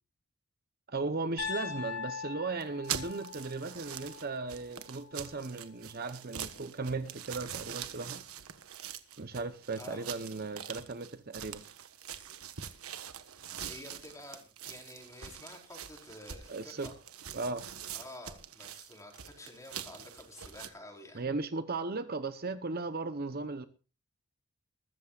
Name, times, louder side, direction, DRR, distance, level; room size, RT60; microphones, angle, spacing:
voice 1, 0.9-8.2 9.2-11.6 16.5-16.9 17.3-17.6 21.1-23.6, right 3 dB, 45° right, 0.9 m, -36 dB
Piano, 1.4-5.4, left 6 dB, 75° left, 7.2 m, -42 dB
sound 1, 2.6-20.7, right 9 dB, 80° right, 1.4 m, -44 dB
voice 2, 9.8-10.1 13.7-16.9 17.9-21.2, left 1 dB, 15° left, 4.5 m, -50 dB
21.5 x 14.5 x 2.5 m
head